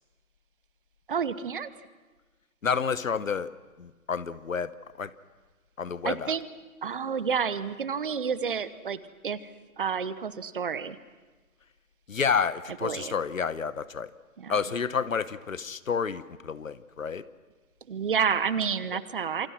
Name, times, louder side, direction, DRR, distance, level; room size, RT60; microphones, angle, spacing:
voice 1, 1.1-1.7 6.0-6.5 6.8-9.5 9.8-11.0 12.8-13.2 14.4-14.5 17.9-19.5, right 6 dB, 35° right, 15 dB, 1.0 m, -29 dB
voice 2, 2.6-3.5 3.8-4.7 5.0-5.1 5.8-6.4 12.1-14.1 14.5-17.2, left 6 dB, 65° left, 16 dB, 1.1 m, -29 dB
28.0 x 24.5 x 6.1 m, 1.3 s
figure-of-eight pair, 145°, 43 cm